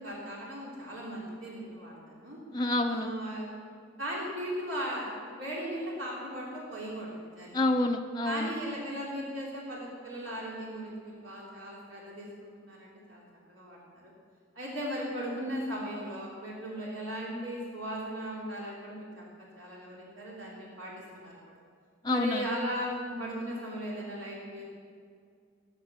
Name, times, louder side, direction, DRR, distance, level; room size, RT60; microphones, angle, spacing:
voice 1, 0.0-2.4 2.9-3.5 4.0-7.5 8.2-13.2 13.5-14.1 14.5-19.2 19.6-21.3 22.1-24.6, equal, 75° right, -4 dB, 3.0 m, -37 dB
voice 2, 2.5-3.1 7.5-8.5 22.0-22.5, left 2 dB, 20° left, 1 dB, 0.5 m, -28 dB
18.0 x 6.6 x 6.7 m, 2.1 s
head